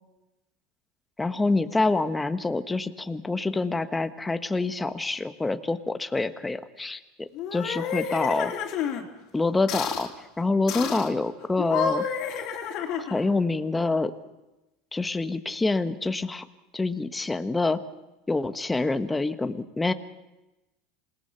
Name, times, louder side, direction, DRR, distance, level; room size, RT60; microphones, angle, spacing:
voice 1, 1.2-8.5 9.3-12.0 13.0-14.1 14.9-16.4 16.7-17.8 18.3-19.9, left 3 dB, 10° left, 9 dB, 1.2 m, -26 dB
sound 1, 7.3-9.0 9.7-10.1 10.7-11.1 11.6-13.3, left 7 dB, 55° left, 3.2 m, -30 dB
27.5 x 18.5 x 5.8 m, 1.0 s
hypercardioid pair, 95°, 0 cm